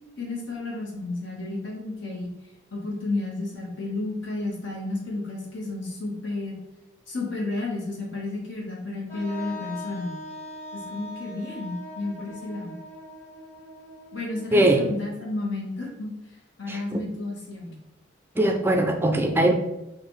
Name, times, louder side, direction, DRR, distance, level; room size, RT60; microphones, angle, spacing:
voice 1, 0.2-2.3 2.7-6.6 7.1-10.1 10.7-12.8 14.1-16.1 16.6-17.7, left 2 dB, 70° left, -3 dB, 1.4 m, -32 dB
Wind instrument woodwind instrument, 9.1-14.9, left 1 dB, 15° left, 1.1 m, -41 dB
voice 2, 14.5-14.9 16.7-17.0 18.4-19.5, right 1 dB, 10° right, 4 dB, 0.4 m, -21 dB
5.8 x 2.5 x 3.1 m, 0.93 s
head